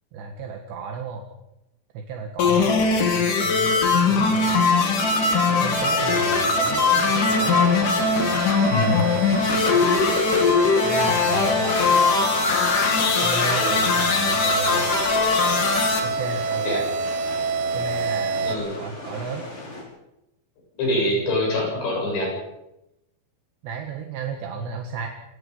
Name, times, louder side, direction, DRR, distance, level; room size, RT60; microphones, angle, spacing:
voice 1, 0.1-1.3 2.1-4.7 5.5-7.6 8.9-9.0 9.6-9.9 10.7-11.9 13.2-14.9 16.0-16.8 17.7-19.5 23.6-25.1, right 4 dB, 70° right, 3 dB, 3.7 m, -34 dB
sound 1, 2.4-16.0, left 4 dB, 50° left, 3.6 m, -20 dB
sound 2, 4.1-19.8, left 2 dB, 30° left, 6.1 m, -38 dB
sound 3, 5.8-18.6, right 4 dB, 85° right, 3.8 m, -28 dB
voice 2, 8.7-9.0 13.6-13.8 16.6-16.8 18.4-18.7 20.8-22.3, left 1 dB, 65° left, -1 dB, 10.0 m, -25 dB
27.5 x 18.5 x 5.6 m, 0.88 s
omnidirectional pair, 5.4 m